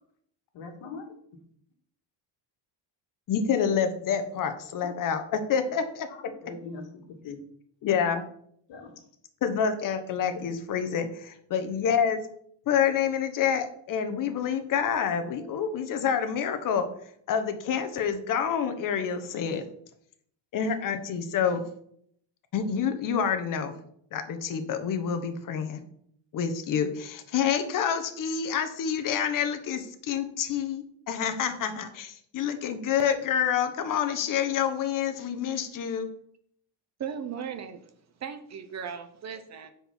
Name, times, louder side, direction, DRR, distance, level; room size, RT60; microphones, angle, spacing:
voice 1, 0.5-1.1 4.8-4.9 6.1-7.4 8.7-8.9 10.3-10.5 11.0-11.1, left 4 dB, 65° left, 4 dB, 1.9 m, -41 dB
voice 2, 3.3-6.1 7.8-8.2 9.4-12.2 12.7-16.9 17.3-19.6 20.5-21.6 22.5-23.8 24.1-25.8 26.3-36.1, left 7 dB, 45° left, 8 dB, 1.1 m, -28 dB
voice 3, 37.0-37.9 38.2-39.7, right 7 dB, 35° right, 9 dB, 0.7 m, -37 dB
9.2 x 4.7 x 5.9 m, 0.67 s
cardioid pair, 180°, 46 cm